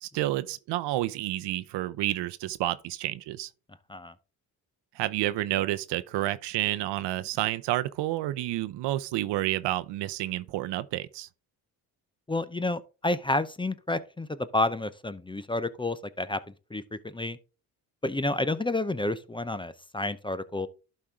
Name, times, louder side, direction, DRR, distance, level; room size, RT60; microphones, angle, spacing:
voice 1, 0.0-3.5 4.9-11.3, right 15 dB, 75° right, 0.7 m, -30 dB
voice 2, 12.3-16.4 16.7-17.4 18.0-20.7, left 2 dB, 10° left, 0.6 m, -30 dB
11.5 x 4.6 x 3.6 m
supercardioid pair, 75°, 42 cm